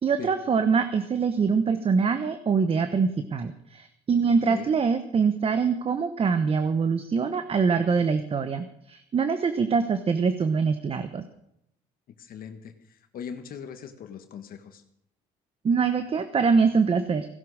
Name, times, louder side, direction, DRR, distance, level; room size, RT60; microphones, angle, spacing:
voice 1, 0.0-11.2 15.6-17.3, right 5 dB, 35° right, 10 dB, 1.1 m, -24 dB
voice 2, 12.2-14.8, left 7 dB, 60° left, 7 dB, 1.6 m, -40 dB
16.5 x 11.5 x 6.4 m, 0.75 s
cardioid pair, 110°, 17 cm